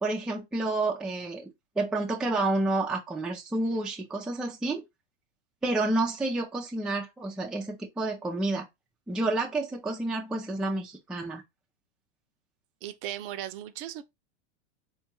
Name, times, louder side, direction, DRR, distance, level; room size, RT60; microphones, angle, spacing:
voice 1, 0.0-1.5 1.8-4.8 5.6-8.7 9.1-11.4, right 2 dB, ahead, 0.4 m, -29 dB
voice 2, 12.8-14.0, right 12 dB, 50° right, 0.5 m, -37 dB
3.6 x 2.3 x 2.9 m
hypercardioid pair, 115°, 35 cm